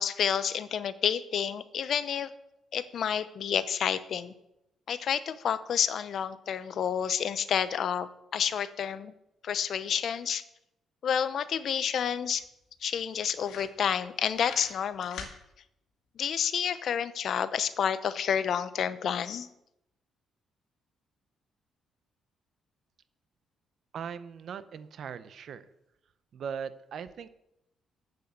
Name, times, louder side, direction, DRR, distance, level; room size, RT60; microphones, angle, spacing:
voice 1, 0.0-2.3 2.7-4.3 4.9-9.1 9.4-10.4 11.0-12.4 12.8-15.3 16.2-19.5, left 8 dB, 60° left, 14 dB, 0.7 m, -29 dB
sound 1, 12.0-12.1 12.4-12.5 13.0-13.1 13.4-14.1 14.3-15.4, left 6 dB, 80° left, 1.9 m, -41 dB
voice 2, 23.9-25.6 26.3-27.3, right 7 dB, 60° right, 13 dB, 0.8 m, -39 dB
7.9 x 7.0 x 7.9 m, 0.84 s
cardioid pair, 90°, 0 cm